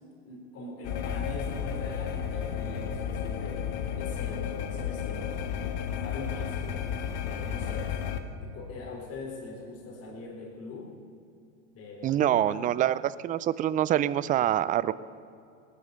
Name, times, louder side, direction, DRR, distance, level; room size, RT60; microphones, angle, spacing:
voice 1, 0.0-3.7 3.9-6.9 7.3-10.9 11.7-12.7, left 3 dB, 35° left, 0 dB, 4.1 m, -42 dB
sound 1, 0.8-8.2, left 8 dB, 55° left, 1.5 m, -33 dB
voice 2, 12.0-14.9, right 12 dB, 20° right, 17 dB, 0.4 m, -25 dB
18.5 x 11.5 x 6.9 m, 2.5 s
hypercardioid pair, 105°, 39 cm